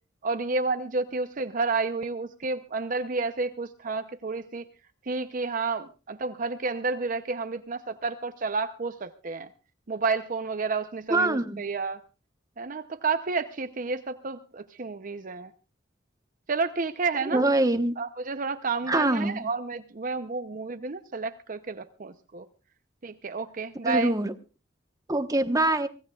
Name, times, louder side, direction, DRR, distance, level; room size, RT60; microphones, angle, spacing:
voice 1, 0.2-4.7 5.0-9.5 9.9-12.0 12.6-15.5 16.5-17.5 18.0-22.5 23.0-24.1, right 4 dB, 45° right, 0.7 m, -30 dB
voice 2, 11.1-11.7 17.3-17.9 18.9-19.4 23.8-24.3 25.1-25.9, right 2 dB, 20° right, 1.1 m, -24 dB
24.5 x 16.5 x 2.4 m
head